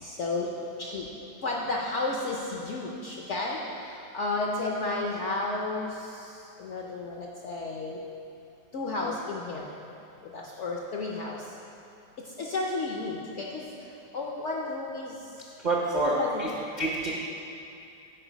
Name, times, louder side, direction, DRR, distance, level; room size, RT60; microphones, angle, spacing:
voice 1, 0.0-0.5 0.8-1.1 1.4-3.6 4.1-5.9 6.6-8.0 8.7-9.7 10.3-11.4 12.4-13.7 14.1-15.1 16.0-16.4, left 2 dB, 65° left, -2 dB, 0.7 m, -32 dB
voice 2, 15.6-16.5 16.8-17.1, right 2 dB, 55° right, -4 dB, 0.5 m, -27 dB
8.8 x 4.6 x 5.0 m, 2.7 s
omnidirectional pair, 1.8 m